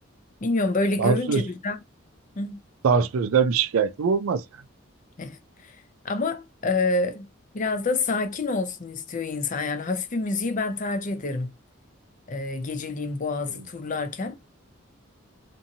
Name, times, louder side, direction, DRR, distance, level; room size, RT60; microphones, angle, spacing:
voice 1, 0.4-1.8 2.4-2.6 5.2-5.7 6.0-7.3 7.5-11.5 12.3-14.4, left 3 dB, 40° left, 0.5 m, -27 dB
voice 2, 1.0-1.4 2.8-4.4, right 5 dB, 80° right, 0.4 m, -22 dB
2.7 x 2.6 x 2.6 m
head